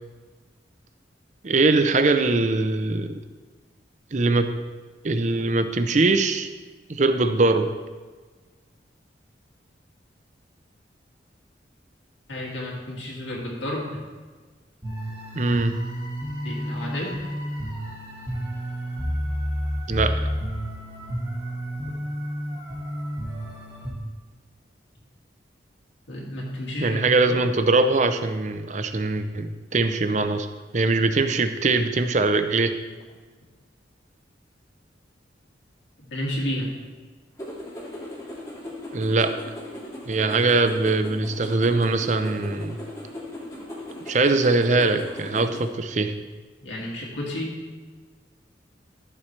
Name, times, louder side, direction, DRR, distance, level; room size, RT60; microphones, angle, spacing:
voice 1, 1.4-3.2 4.1-4.5 5.0-6.5 6.9-7.7 15.3-15.8 19.9-20.2 26.8-30.5 30.7-32.7 38.9-39.4 40.1-42.8 44.1-46.1, right 3 dB, 40° right, 9 dB, 0.6 m, -22 dB
voice 2, 12.3-13.9 16.4-17.2 26.1-27.4 36.0-36.7 46.6-47.6, left 1 dB, 80° left, -3 dB, 2.4 m, -31 dB
sound 1, 14.8-23.9, equal, 20° right, 1.8 m, -30 dB
sound 2, 37.4-45.7, left 1 dB, 20° left, 2.2 m, -38 dB
14.0 x 7.4 x 3.3 m, 1.4 s
head